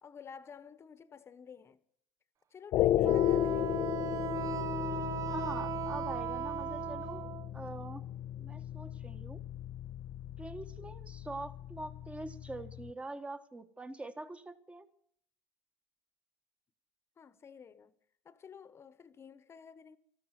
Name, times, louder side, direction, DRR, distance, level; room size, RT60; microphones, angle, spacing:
voice 1, 0.0-1.8 2.5-3.9 17.2-17.9 18.2-20.0, left 6 dB, 30° left, 1.2 m, -52 dB
sound 1, 2.7-12.9, left 13 dB, 50° left, 0.6 m, -35 dB
voice 2, 2.8-3.1 5.3-7.3 7.5-8.0 8.4-9.4 10.4-14.9, right 2 dB, 15° right, 1.4 m, -44 dB
Wind instrument woodwind instrument, 3.0-7.5, right 10 dB, 40° right, 0.8 m, -37 dB
13.5 x 12.5 x 7.6 m
supercardioid pair, 105°, 9 cm